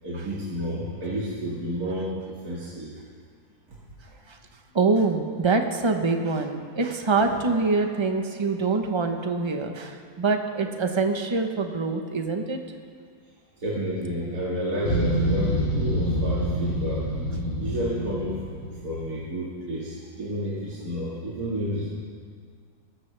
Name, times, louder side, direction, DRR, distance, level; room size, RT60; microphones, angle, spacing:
voice 1, 0.0-2.9 3.7-3.8 4.0-4.2 7.1-7.4 13.6-17.1 17.6-18.4 18.8-21.9, equal, 70° right, -8 dB, 2.6 m, -31 dB
voice 2, 4.7-12.6, right 4 dB, 25° right, 5 dB, 0.8 m, -25 dB
sound 1, 14.8-19.1, equal, 75° left, 3.0 m, -26 dB
22.5 x 13.5 x 3.4 m, 2.1 s
omnidirectional pair, 1.6 m